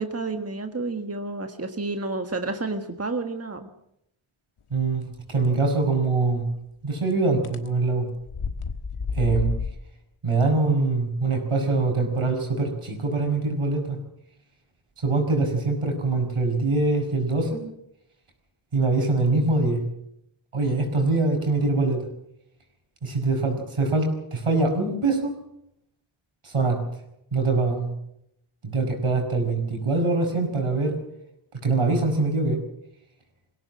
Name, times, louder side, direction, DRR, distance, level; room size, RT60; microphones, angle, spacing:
voice 1, 0.0-3.7, right 3 dB, 30° right, 6 dB, 1.5 m, -30 dB
voice 2, 4.7-5.0 5.3-6.5 6.8-8.1 9.1-9.5 10.2-14.0 15.0-17.6 18.7-19.8 20.5-22.1 23.0-25.3 26.4-26.8 27.3-27.9 28.6-31.0 31.6-32.6, right 3 dB, 80° right, 3 dB, 5.9 m, -23 dB
sound 1, 6.0-6.1 7.4-7.7 8.2-9.7, left 5 dB, 80° left, 1.5 m, -29 dB
22.0 x 17.0 x 7.5 m, 0.77 s
wide cardioid pair, 85°, 50 cm